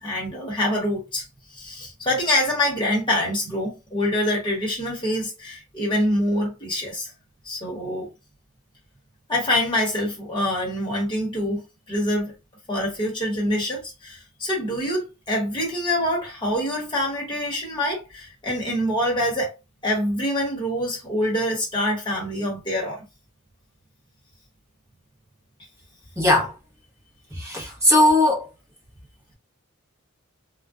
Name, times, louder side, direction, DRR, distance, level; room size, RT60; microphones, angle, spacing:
voice 1, 0.0-1.2 1.5-7.1 7.4-8.1 9.3-12.3 12.7-19.5 19.8-23.0 27.6-27.7, left 1 dB, 20° left, 1.0 m, -25 dB
voice 2, 26.2-26.5 27.3-28.5, left 1 dB, 15° right, 0.9 m, -18 dB
2.4 x 2.1 x 2.4 m
head